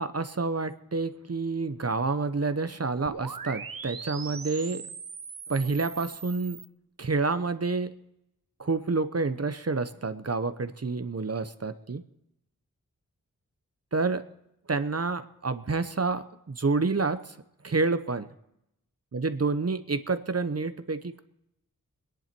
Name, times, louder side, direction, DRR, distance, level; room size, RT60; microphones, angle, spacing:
voice 1, 0.0-4.8 5.5-6.6 7.0-7.9 8.6-12.0 13.9-14.3 14.7-17.4 17.6-18.3 19.1-21.2, right 3 dB, 45° right, 11 dB, 0.9 m, -28 dB
sound 1, 3.0-6.7, right 5 dB, 85° right, 1.1 m, -40 dB
23.0 x 10.5 x 4.5 m, 0.82 s
wide cardioid pair, 50°, 34 cm